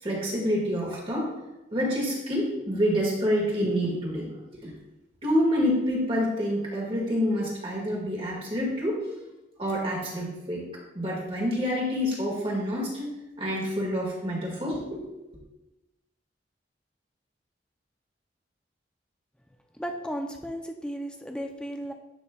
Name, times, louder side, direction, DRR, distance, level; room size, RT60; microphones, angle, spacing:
voice 1, 0.0-1.3 1.7-4.3 4.6-4.7 5.2-9.0 9.6-10.6 10.9-13.1 13.4-15.0, equal, 30° right, -3 dB, 1.8 m, -27 dB
voice 2, 19.7-21.9, equal, 5° left, 3 dB, 0.5 m, -34 dB
11.0 x 5.3 x 2.4 m, 0.99 s
head